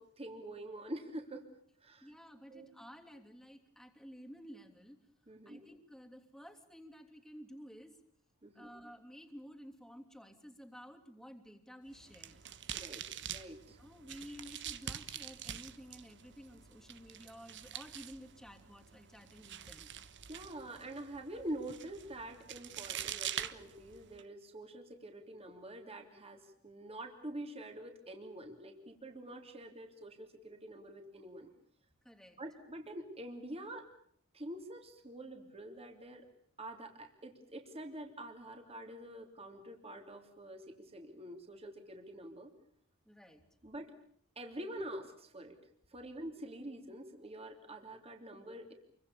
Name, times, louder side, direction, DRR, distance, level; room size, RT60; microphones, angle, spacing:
voice 1, 0.0-1.5 1.8-2.1 2.5-2.7 5.3-5.6 8.4-8.7 12.7-13.8 20.3-31.5 32.4-33.9 34.3-36.3 36.6-42.5 43.6-43.9 44.3-45.6 45.9-48.7, right 1 dB, 30° right, 4 dB, 3.2 m, -46 dB
voice 2, 2.0-5.0 5.4-8.0 8.5-12.4 13.8-19.9 32.0-32.4 43.0-43.4, equal, ahead, 4 dB, 3.1 m, -53 dB
sound 1, 11.9-24.2, right 10 dB, 55° right, 1.3 m, -46 dB
28.5 x 24.0 x 7.0 m, 0.62 s
head